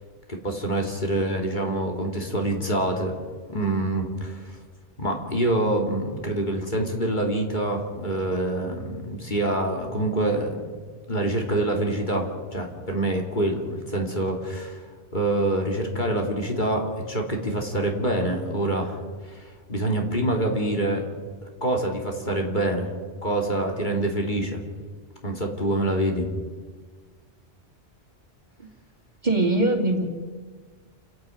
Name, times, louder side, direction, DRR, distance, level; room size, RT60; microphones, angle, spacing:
voice 1, 0.3-3.2 3.5-4.6 5.0-10.7 11.1-14.8 15.1-19.0 19.2-21.1 21.6-22.9 23.2-24.6 25.2-26.3, right 1 dB, 40° left, 2 dB, 3.0 m, -26 dB
voice 2, 29.2-30.1, right 2 dB, 40° right, 1 dB, 2.7 m, -21 dB
29.0 x 11.0 x 9.2 m, 1.5 s
omnidirectional pair, 1.2 m